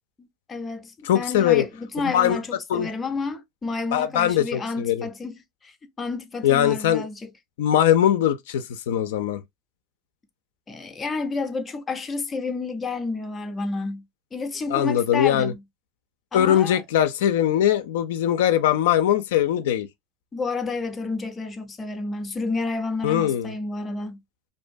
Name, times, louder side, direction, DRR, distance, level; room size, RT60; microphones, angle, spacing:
voice 1, 0.2-7.3 10.7-14.0 14.3-15.6 16.3-16.8 20.3-24.2, left 3 dB, 20° left, 0.5 m, -30 dB
voice 2, 1.0-1.7 2.0-2.4 2.7-2.9 3.9-5.0 6.4-7.0 7.6-9.4 14.7-15.5 16.3-19.9 23.0-23.5, left 10 dB, 80° left, 0.3 m, -21 dB
2.6 x 2.2 x 2.5 m
supercardioid pair, 120°, 0 cm